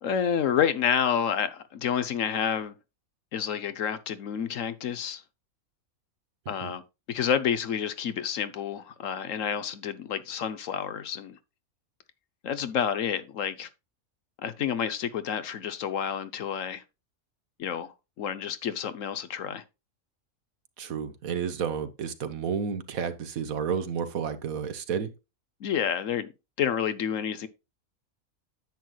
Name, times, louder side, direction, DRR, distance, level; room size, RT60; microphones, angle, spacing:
voice 1, 0.0-2.7 3.3-5.2 6.5-6.8 7.1-11.4 12.4-13.7 14.4-16.8 17.6-19.6 25.6-26.3 26.6-27.5, left 8 dB, 65° left, 1.1 m, -29 dB
voice 2, 20.8-25.1, right 7 dB, 75° right, 1.5 m, -31 dB
10.0 x 7.7 x 2.3 m
omnidirectional pair, 1.5 m